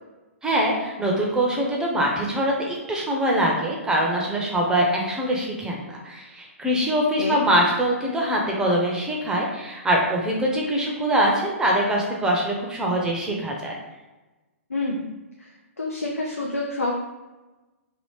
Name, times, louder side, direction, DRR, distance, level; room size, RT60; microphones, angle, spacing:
voice 1, 0.4-13.8, right 1 dB, 10° right, -2 dB, 0.6 m, -23 dB
voice 2, 14.7-15.5 15.8-16.9, left 2 dB, 80° left, -2 dB, 0.5 m, -28 dB
2.8 x 2.8 x 3.1 m, 1.1 s
figure-of-eight pair, 115°, 8 cm